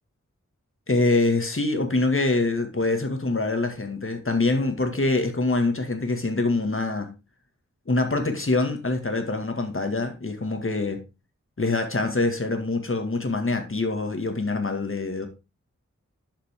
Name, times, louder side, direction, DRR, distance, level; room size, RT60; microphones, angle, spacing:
voice 1, 0.9-7.1 7.9-11.0 11.6-15.3, left 2 dB, 45° left, 2.1 m, -25 dB
12.0 x 5.9 x 3.6 m
wide cardioid pair, 65°, 30 cm